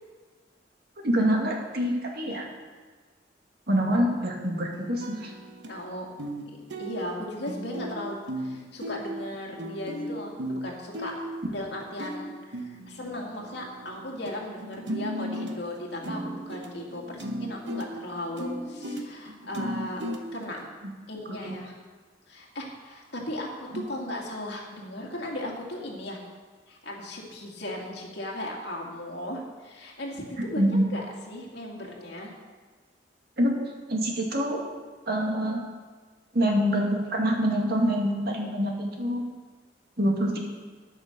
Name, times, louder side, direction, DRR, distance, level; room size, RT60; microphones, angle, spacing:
voice 1, 1.0-2.5 3.7-5.3 21.3-21.6 23.7-23.8 30.5-30.9 33.4-33.5 33.9-34.6 35.1-35.6 36.3-39.2 40.0-40.4, equal, 60° right, 0 dB, 2.2 m, -25 dB
sound 1, 3.7-5.8 6.2-6.4 6.7-14.3 14.6-20.7, equal, 75° right, 1.2 m, -36 dB
voice 2, 5.7-6.1 6.5-11.1 11.5-20.0 20.3-20.6 21.1-21.7 22.3-26.2 26.7-32.3, left 1 dB, 65° left, -1 dB, 2.4 m, -37 dB
10.0 x 8.9 x 6.8 m, 1.4 s
head